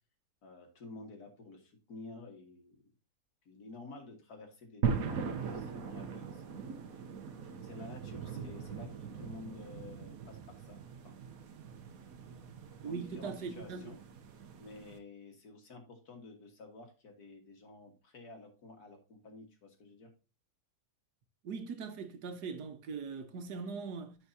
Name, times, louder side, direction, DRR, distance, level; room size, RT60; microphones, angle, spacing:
voice 1, 0.4-2.9 3.4-6.4 6.9-7.0 7.6-11.1 12.1-12.4 12.8-14.0 14.6-20.1, left 3 dB, 70° left, 2.2 m, -51 dB
sound 1, 4.8-15.0, right 6 dB, 65° right, 1.3 m, -40 dB
voice 2, 12.8-13.9 21.4-24.2, right 5 dB, 80° right, 1.6 m, -40 dB
14.0 x 4.7 x 2.7 m
omnidirectional pair, 1.7 m